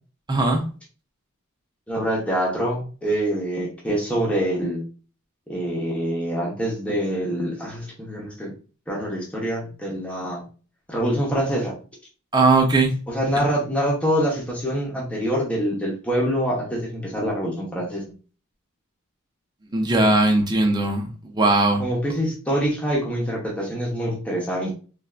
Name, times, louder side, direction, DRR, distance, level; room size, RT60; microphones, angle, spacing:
voice 1, 0.3-0.6 12.3-12.9 19.7-21.1 21.4-21.8, right 2 dB, 20° right, 2 dB, 0.7 m, -18 dB
voice 2, 1.9-4.8 5.5-8.5 8.9-10.4 10.9-11.7 13.1-18.0 21.8-24.7, equal, 5° left, -4 dB, 0.9 m, -25 dB
3.3 x 2.6 x 2.4 m, 0.37 s
head